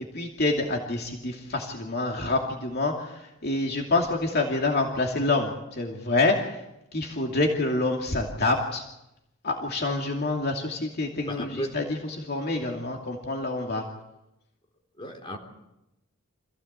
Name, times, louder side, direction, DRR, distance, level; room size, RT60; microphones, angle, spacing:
voice 1, 0.0-6.6 6.9-8.8 9.4-13.8, left 2 dB, 50° left, 1 dB, 2.6 m, -27 dB
voice 2, 11.3-11.7 15.0-15.4, equal, 25° left, 2 dB, 3.8 m, -34 dB
26.5 x 16.0 x 8.2 m, 0.88 s
head